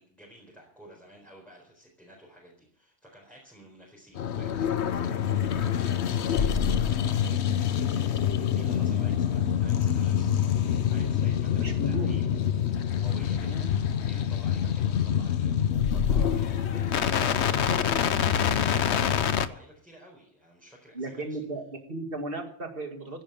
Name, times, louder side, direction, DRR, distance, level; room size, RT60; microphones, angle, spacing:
voice 1, 0.0-6.0 6.3-7.8 8.5-12.2 12.7-21.4, equal, ahead, -3 dB, 4.2 m, -51 dB
sound 1, 4.2-19.5, left 8 dB, 70° left, 1.1 m, -26 dB
voice 2, 11.6-12.1 13.4-13.7 20.9-23.2, right 2 dB, 50° right, 5 dB, 2.2 m, -35 dB
15.5 x 10.5 x 7.0 m, 0.65 s
omnidirectional pair, 1.2 m